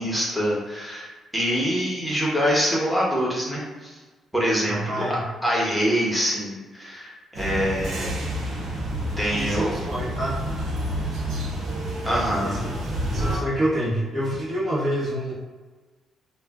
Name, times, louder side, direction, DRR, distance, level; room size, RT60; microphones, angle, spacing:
voice 1, 0.0-4.0 4.3-8.2 9.2-9.7 12.0-12.5, equal, ahead, -6 dB, 0.9 m, -25 dB
voice 2, 4.6-5.2 9.3-10.4 12.4-12.7 13.1-15.3, equal, 45° right, -6 dB, 0.9 m, -27 dB
sound 1, 7.3-13.4, equal, 70° right, 0.7 m, -29 dB
2.3 x 2.1 x 3.4 m, 1.3 s
cardioid pair, 90°, 0 cm